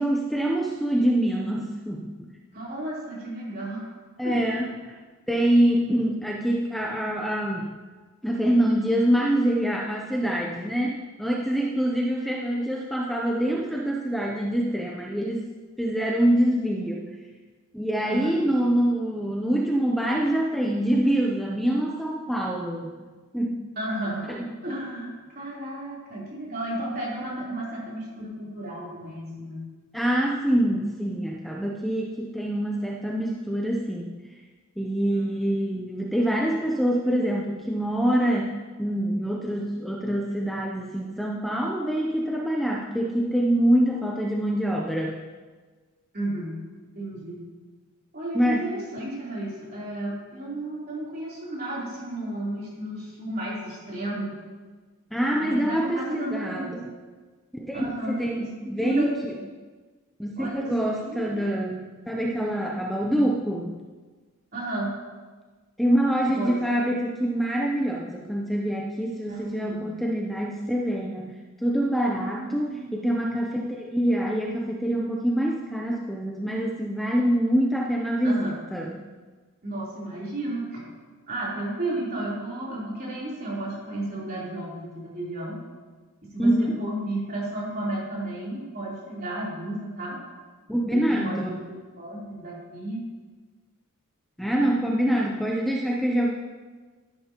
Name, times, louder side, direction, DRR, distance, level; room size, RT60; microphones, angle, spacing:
voice 1, 0.0-2.3 4.2-5.0 5.3-7.7 8.2-15.5 15.8-17.1 17.7-22.9 23.3-23.6 24.3-24.5 29.9-34.2 34.8-45.1 48.3-48.7 55.1-56.9 57.5-59.3 60.2-63.8 65.8-79.0 86.4-86.8 90.7-91.6 94.4-96.3, right 1 dB, ahead, -2 dB, 0.6 m, -25 dB
voice 2, 2.5-3.9 4.2-4.4 18.0-18.4 23.8-24.3 24.6-29.6 35.1-35.5 46.1-46.6 47.0-47.4 48.1-54.3 55.4-56.8 57.7-58.5 58.8-59.2 60.4-61.4 64.5-64.9 66.3-66.6 69.3-69.9 72.1-73.0 78.2-78.6 79.6-80.9 81.3-85.6 86.3-90.2 90.9-93.1, right 1 dB, 40° right, -6 dB, 3.6 m, -33 dB
13.0 x 11.5 x 3.0 m, 1.4 s
head